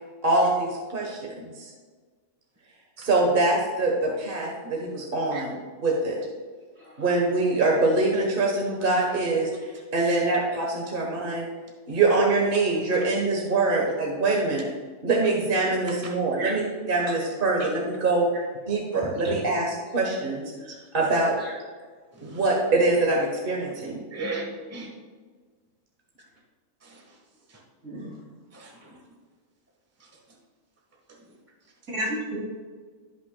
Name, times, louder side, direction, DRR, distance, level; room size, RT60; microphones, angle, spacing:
voice 1, 0.2-1.7 3.0-5.5 5.8-6.2 7.0-11.4 11.9-14.6 15.0-18.2 18.7-20.5 20.9-21.4 22.2-24.0, right 2 dB, 40° right, -1 dB, 1.3 m, -24 dB
voice 2, 6.8-7.1 16.4-16.5 21.4-21.5 27.8-28.1 31.9-32.4, right 1 dB, 65° right, -5 dB, 3.3 m, -32 dB
voice 3, 20.7-21.1 22.1-22.5 24.1-24.9 26.8-27.2 27.5-27.6 28.5-29.0 30.0-30.2 31.1-31.3 31.6-31.7, right 2 dB, 10° right, -1 dB, 1.3 m, -39 dB
16.5 x 5.9 x 2.3 m, 1.5 s
omnidirectional pair, 1.5 m